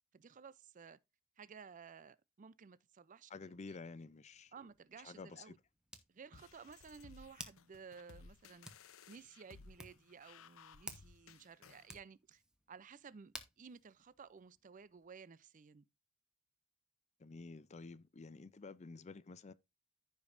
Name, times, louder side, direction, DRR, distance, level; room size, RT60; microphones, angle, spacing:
voice 1, 0.1-1.0 1.4-3.8 4.5-5.6 6.1-8.7 9.1-12.4 12.7-15.8, right 6 dB, 35° right, 0.4 m, -56 dB
voice 2, 3.3-4.5 5.0-5.5 17.2-19.5, left 4 dB, 30° left, 0.4 m, -51 dB
Hands, 4.3-15.1, equal, 5° right, 1.1 m, -57 dB
sound 1, 6.3-11.9, left 5 dB, 70° left, 0.7 m, -59 dB
14.5 x 5.2 x 2.5 m
head